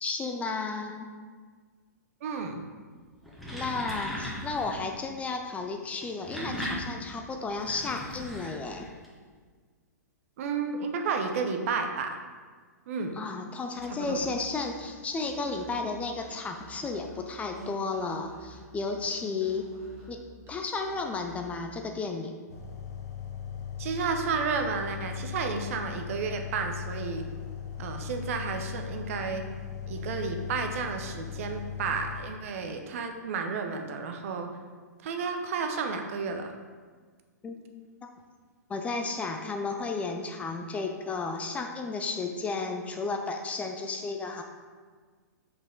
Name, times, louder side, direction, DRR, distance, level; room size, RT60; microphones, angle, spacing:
voice 1, 0.0-1.1 3.5-8.9 13.1-19.7 20.1-20.2 20.5-22.3 37.4-37.6 38.0-38.1 38.7-44.4, left 4 dB, 15° left, 4 dB, 0.5 m, -33 dB
voice 2, 2.2-2.6 10.4-12.1 12.9-13.2 13.9-14.2 23.8-27.2 27.8-29.4 29.9-34.5 35.0-36.5, right 5 dB, 50° right, 5 dB, 0.8 m, -32 dB
sound 1, 3.1-4.8 6.0-9.1, equal, ahead, 1.3 m, -38 dB
Musical instrument, 13.7-21.6, right 2 dB, 25° right, 2.0 m, -49 dB
sound 2, 22.5-32.2, left 8 dB, 60° left, 1.1 m, -38 dB
5.9 x 5.3 x 3.8 m, 1.5 s
figure-of-eight pair, 110°, 9 cm